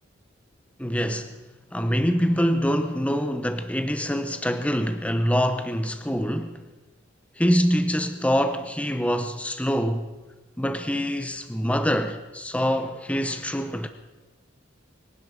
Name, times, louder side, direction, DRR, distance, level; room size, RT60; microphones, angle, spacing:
voice 1, 0.8-1.3 1.7-6.6 7.4-10.1 10.6-13.9, equal, 5° left, 0.8 m, -25 dB
24.0 x 10.5 x 5.0 m
head